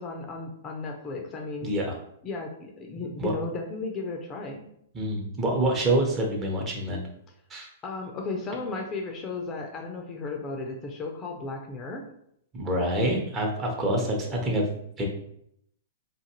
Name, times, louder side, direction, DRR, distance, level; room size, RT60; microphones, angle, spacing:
voice 1, 0.0-1.7 2.2-4.6 7.8-12.1, left 3 dB, 25° left, 2 dB, 0.5 m, -35 dB
voice 2, 1.6-1.9 3.2-3.3 4.9-7.0 7.5-7.7 12.5-14.6 15.0-15.1, right 1 dB, 25° right, 0 dB, 0.8 m, -26 dB
2.5 x 2.5 x 2.9 m, 0.72 s
figure-of-eight pair, 110°, 0 cm